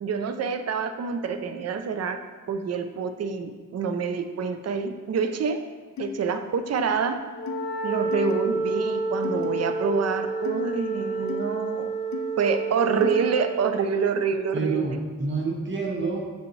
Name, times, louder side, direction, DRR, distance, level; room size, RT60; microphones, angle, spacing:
voice 1, 0.0-2.2 2.5-5.6 6.0-7.2 7.8-11.9 12.4-15.0, right 5 dB, 50° right, 8 dB, 0.4 m, -27 dB
sound 1, 6.0-6.1 6.8-6.9 7.5-7.6 8.1-8.3 9.2-9.5 10.4-10.6 11.3-11.4 12.1-12.2 13.0-13.2, left 9 dB, 60° left, 0.5 m, -35 dB
Wind instrument woodwind instrument, 7.3-13.6, right 3 dB, 30° left, 1.3 m, -29 dB
voice 2, 14.5-16.2, right 4 dB, 35° right, 0 dB, 1.0 m, -28 dB
6.7 x 5.0 x 3.1 m, 1.4 s
wide cardioid pair, 110°, 32 cm